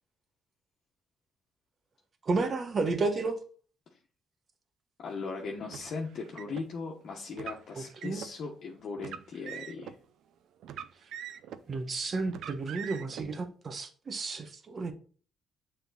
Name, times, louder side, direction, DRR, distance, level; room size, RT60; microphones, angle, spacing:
voice 1, 2.2-3.4 7.8-8.2 11.7-14.9, right 3 dB, 40° right, 1.2 m, -32 dB
voice 2, 5.0-10.0, left 4 dB, 60° left, 1.2 m, -38 dB
Car, 5.7-6.7 7.3-8.3 9.0-10.0 10.6-11.7 12.3-13.2, right 9 dB, 80° right, 0.5 m, -43 dB
7.1 x 3.8 x 4.0 m
cardioid pair, 90°, 0 cm